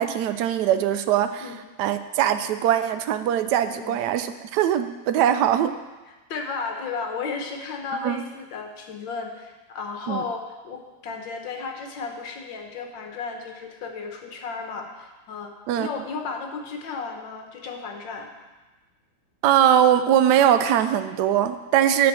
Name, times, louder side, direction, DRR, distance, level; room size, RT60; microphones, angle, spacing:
voice 1, 0.0-1.5 1.8-5.8 8.0-8.2 10.1-10.2 15.7-15.9 19.4-22.1, right 10 dB, 75° right, 10 dB, 1.0 m, -21 dB
voice 2, 6.3-18.3, left 4 dB, 70° left, 4 dB, 1.6 m, -34 dB
8.3 x 6.0 x 6.1 m, 1.2 s
omnidirectional pair, 2.2 m